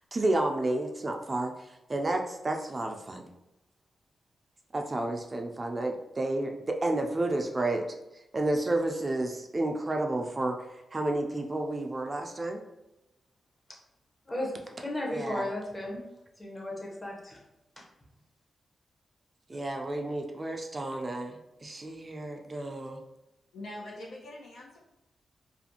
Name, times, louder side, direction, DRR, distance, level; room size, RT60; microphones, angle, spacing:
voice 1, 0.1-1.5 1.9-3.3 4.7-7.8 8.3-10.6 10.9-12.6 15.1-15.5 19.5-23.0, right 2 dB, 30° right, 3 dB, 0.3 m, -31 dB
voice 2, 14.8-16.0 16.4-17.4, left 1 dB, 20° left, -2 dB, 0.8 m, -34 dB
voice 3, 23.5-24.8, left 1 dB, 90° left, -5 dB, 0.9 m, -43 dB
2.5 x 2.5 x 2.8 m, 0.94 s
cardioid pair, 95°, 0 cm